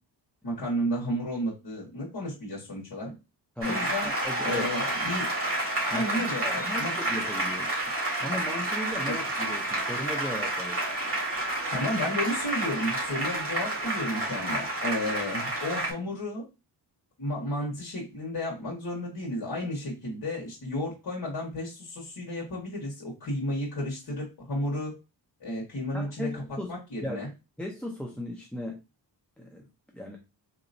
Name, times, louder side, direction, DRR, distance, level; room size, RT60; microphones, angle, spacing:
voice 1, 0.4-3.1 3.6-4.1 4.4-5.3 5.8-6.9 9.1-9.2 11.7-16.4 17.2-24.9 25.4-26.4 26.7-27.3, left 1 dB, 60° left, -4 dB, 1.4 m, -32 dB
voice 2, 3.6-4.7 5.9-7.8 8.2-10.8 25.9-26.7 27.0-27.2 27.6-28.8 29.4-29.6 29.9-30.2, left 1 dB, 5° left, 0 dB, 0.5 m, -36 dB
Applause, 3.6-15.9, right 2 dB, 30° right, 2.0 m, -30 dB
4.1 x 2.9 x 2.6 m, 0.27 s
wide cardioid pair, 140°, 42 cm